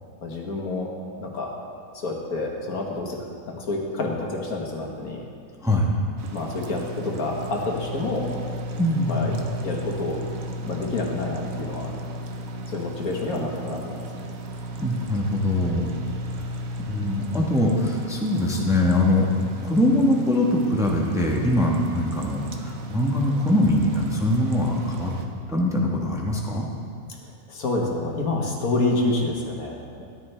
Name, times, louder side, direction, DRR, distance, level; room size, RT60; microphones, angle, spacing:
voice 1, 0.2-0.9 1.2-1.5 1.9-3.2 3.5-5.2 6.3-8.3 9.1-9.3 9.6-10.3 10.6-11.9 12.7-14.1 27.2-30.0, left 2 dB, 80° left, 0 dB, 1.9 m, -28 dB
voice 2, 5.6-6.0 8.8-9.3 14.8-15.9 16.8-19.3 19.6-25.1 25.5-26.7, left 1 dB, ahead, -2 dB, 1.0 m, -22 dB
sound 1, 6.2-25.3, right 1 dB, 70° right, 1.3 m, -34 dB
13.5 x 11.0 x 3.4 m, 2.2 s
omnidirectional pair, 1.5 m